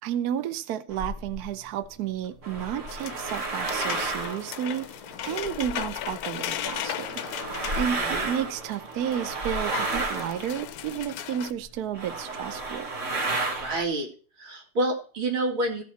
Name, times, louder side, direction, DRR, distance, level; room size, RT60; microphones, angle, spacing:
voice 1, 0.0-4.9 5.2-7.1 7.8-12.9, right 9 dB, 65° right, 1.1 m, -32 dB
sound 1, 0.9-1.4 2.2-6.2 6.6-11.2 11.7-11.8 11.9-13.8, right 3 dB, 40° right, 1.7 m, -32 dB
sound 2, 2.9-8.8 9.1-9.2 9.4-11.5, left 10 dB, 70° left, 0.9 m, -36 dB
voice 2, 7.7-8.3 13.6-14.1 14.4-15.8, right 1 dB, 85° right, 3.2 m, -28 dB
15.0 x 5.7 x 4.4 m
omnidirectional pair, 2.2 m